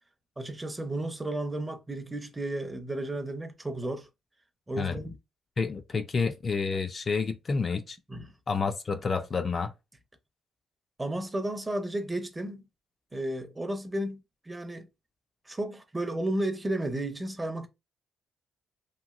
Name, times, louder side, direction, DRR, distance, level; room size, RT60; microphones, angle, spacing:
voice 1, 0.4-4.1 4.7-5.2 8.1-8.3 11.0-12.6 13.1-14.9 15.5-17.7, right 1 dB, 15° right, 0.5 m, -33 dB
voice 2, 4.8-5.1 5.6-8.0 8.5-9.7, left 4 dB, 40° left, 0.3 m, -29 dB
3.0 x 2.6 x 2.4 m
cardioid pair, 90°, 0 cm